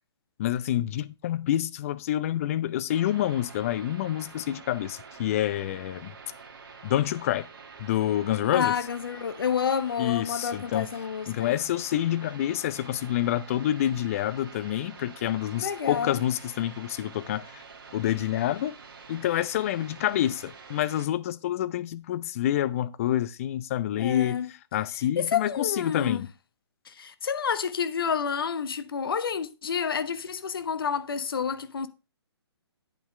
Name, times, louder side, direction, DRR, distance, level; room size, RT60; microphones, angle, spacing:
voice 1, 0.4-6.1 6.8-7.5 7.8-8.7 10.0-10.9 11.3-17.6 17.9-18.7 19.1-24.4 24.7-26.3, left 12 dB, 30° left, 0.6 m, -27 dB
sound 1, 2.9-21.1, right 5 dB, 50° right, 2.0 m, -47 dB
voice 2, 8.5-11.5 15.6-16.2 24.0-24.5 25.2-26.3 26.9-31.9, left 7 dB, 55° left, 1.1 m, -29 dB
8.8 x 8.5 x 3.2 m
figure-of-eight pair, 135°, 14 cm